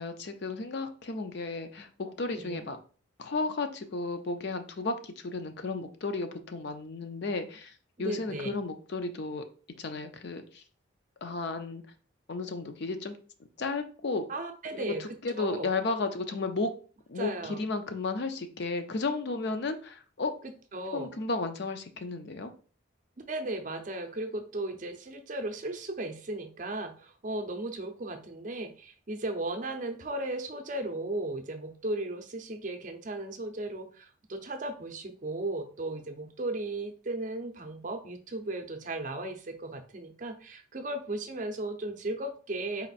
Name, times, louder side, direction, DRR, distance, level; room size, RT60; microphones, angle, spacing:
voice 1, 0.0-2.8 3.2-7.7 8.0-9.4 9.8-10.6 11.2-11.8 12.3-13.1 13.6-14.2 14.7-16.7 17.1-20.3 20.9-22.5, left 3 dB, 55° left, 8 dB, 0.5 m, -33 dB
voice 2, 8.0-8.5 14.3-15.7 17.2-17.6 20.4-21.1 23.3-42.9, right 2 dB, 35° right, 6 dB, 0.5 m, -36 dB
4.2 x 2.6 x 4.0 m, 0.39 s
head